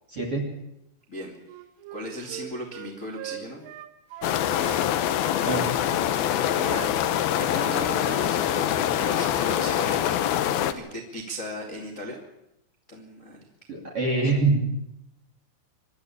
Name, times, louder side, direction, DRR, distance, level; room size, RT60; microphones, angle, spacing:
voice 1, 0.1-0.5 5.5-5.7 13.7-14.6, right 3 dB, 35° right, 1 dB, 2.8 m, -24 dB
Wind instrument woodwind instrument, 1.4-4.9 5.2-8.3 8.6-8.8, right 11 dB, 75° right, 3.6 m, -41 dB
voice 2, 1.9-3.7 6.5-10.0 10.7-12.2 12.9-13.4, equal, 25° left, 0 dB, 1.8 m, -37 dB
sound 1, 4.2-10.7, left 11 dB, 85° left, 2.1 m, -24 dB
25.5 x 12.0 x 8.7 m, 0.84 s
omnidirectional pair, 5.9 m